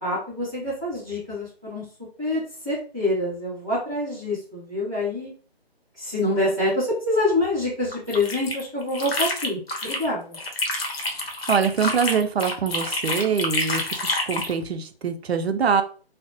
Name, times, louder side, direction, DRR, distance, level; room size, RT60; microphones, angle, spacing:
voice 1, 0.0-1.8 2.2-5.3 6.0-10.4, left 2 dB, 5° right, -14 dB, 0.9 m, -26 dB
sound 1, 7.9-10.1 10.3-14.5, left 2 dB, 70° left, 0.8 m, -28 dB
voice 2, 11.5-13.9 14.3-15.8, right 6 dB, 75° right, 8 dB, 0.5 m, -23 dB
2.4 x 2.0 x 2.5 m, 0.40 s
figure-of-eight pair, 165°, 31 cm